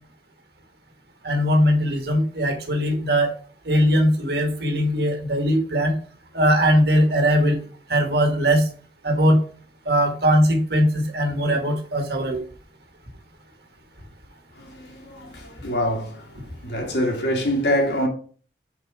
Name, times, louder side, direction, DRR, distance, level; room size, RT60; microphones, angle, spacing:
voice 1, 1.2-3.3 3.7-5.9 6.3-7.6 7.9-8.6 9.0-9.4 9.9-12.4, equal, 60° right, 1.7 m, -20 dB
voice 2, 14.6-16.3 16.6-18.1, equal, 65° left, 1.7 m, -25 dB
4.9 x 4.7 x 5.9 m
head